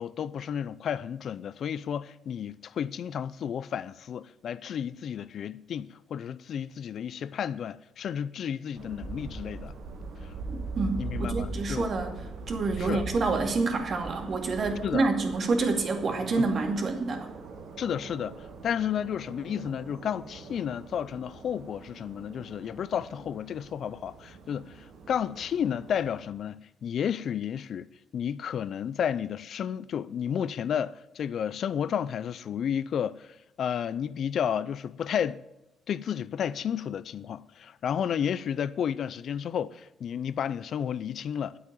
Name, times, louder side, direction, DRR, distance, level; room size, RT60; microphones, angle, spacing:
voice 1, 0.0-9.7 11.0-11.9 12.8-13.0 14.8-15.1 16.4-16.5 17.8-18.4 18.6-24.7 25.1-27.9 28.1-33.3 33.6-35.4 35.9-41.6, left 8 dB, 65° left, 0.5 m, -32 dB
sound 1, 8.8-26.2, right 3 dB, 80° right, 2.1 m, -41 dB
voice 2, 10.5-12.1 12.5-17.3, right 3 dB, 50° right, 2.4 m, -28 dB
10.0 x 8.0 x 9.0 m
cardioid pair, 90°, 0 cm